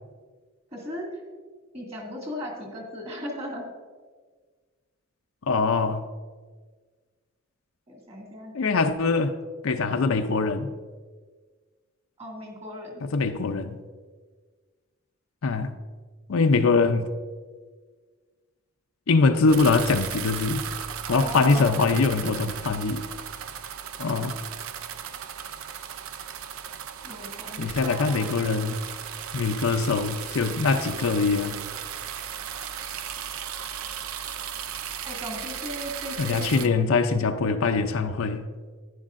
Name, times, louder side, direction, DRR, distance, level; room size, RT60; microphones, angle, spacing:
voice 1, 0.7-1.2 1.7-3.7 7.9-8.5 12.2-13.0 21.1-21.9 27.0-28.5 35.0-36.7, equal, 30° right, -1 dB, 2.1 m, -37 dB
voice 2, 5.5-6.0 8.5-9.3 9.6-10.7 13.0-13.8 15.4-15.7 16.3-17.1 19.1-20.6 21.1-23.0 24.0-24.4 27.6-28.8 29.3-31.6 36.2-38.4, left 4 dB, 80° left, 6 dB, 0.5 m, -23 dB
sound 1, 19.5-36.7, right 8 dB, 90° right, 0.5 m, -36 dB
11.5 x 10.0 x 2.5 m, 1.5 s
head